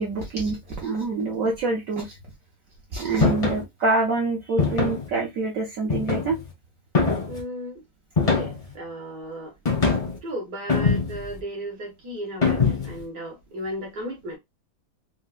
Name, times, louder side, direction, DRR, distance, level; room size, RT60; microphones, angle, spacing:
voice 1, 0.0-2.2 2.9-6.4, right 3 dB, 75° right, 0.7 m, -26 dB
sound 1, 3.2-3.6 4.6-5.1 5.9-6.5 6.9-7.4 8.2-8.7 9.6-10.2 10.7-11.3 12.4-13.0, left 4 dB, 60° left, 0.3 m, -23 dB
voice 2, 7.2-7.8 8.2-9.5 10.2-14.4, equal, 55° right, 1.2 m, -35 dB
4.5 x 2.0 x 2.3 m
omnidirectional pair, 2.2 m